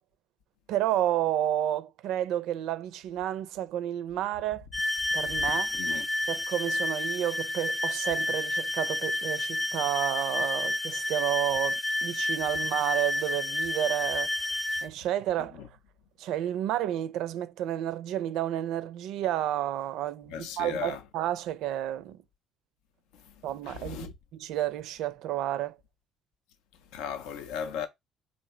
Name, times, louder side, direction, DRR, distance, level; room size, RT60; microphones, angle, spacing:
voice 1, 0.7-4.7 5.1-5.7 6.3-15.6 16.2-22.2 23.4-25.8, right 12 dB, 75° right, 0.4 m, -31 dB
sound 1, 4.7-14.9, left 1 dB, 15° left, 0.4 m, -30 dB
voice 2, 5.7-6.1 15.6-15.7 20.3-21.0 23.7-24.1 26.9-27.9, left 7 dB, 80° left, 0.5 m, -36 dB
2.8 x 2.7 x 4.3 m
supercardioid pair, 65°, 0 cm